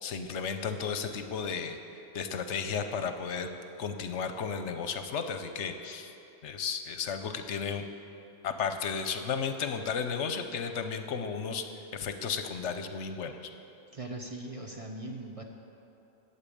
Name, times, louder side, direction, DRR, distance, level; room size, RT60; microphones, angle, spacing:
voice 1, 0.0-1.8 2.1-6.1 6.4-7.8 8.4-11.7 11.9-13.5, left 6 dB, 75° left, 8 dB, 1.0 m, -34 dB
voice 2, 13.9-15.4, right 2 dB, 35° right, 2 dB, 0.7 m, -40 dB
8.6 x 8.2 x 8.5 m, 2.8 s
omnidirectional pair, 1.2 m